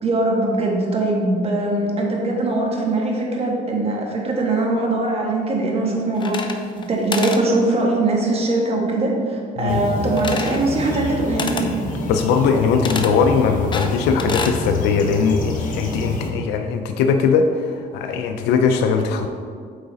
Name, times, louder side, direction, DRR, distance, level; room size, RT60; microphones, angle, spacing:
voice 1, 0.0-11.6, right 2 dB, 35° right, -1 dB, 1.5 m, -21 dB
sound 1, 6.2-6.9 7.1-7.4 10.2-10.6 11.4-11.7 12.8-13.1 13.7-14.6, left 4 dB, 30° left, 0.6 m, -28 dB
sound 2, 9.7-16.3, left 3 dB, 50° left, 1.1 m, -28 dB
voice 2, 12.1-19.3, left 5 dB, 90° left, 5 dB, 0.5 m, -20 dB
8.5 x 4.0 x 4.0 m, 2.1 s
cardioid pair, 110°, 17 cm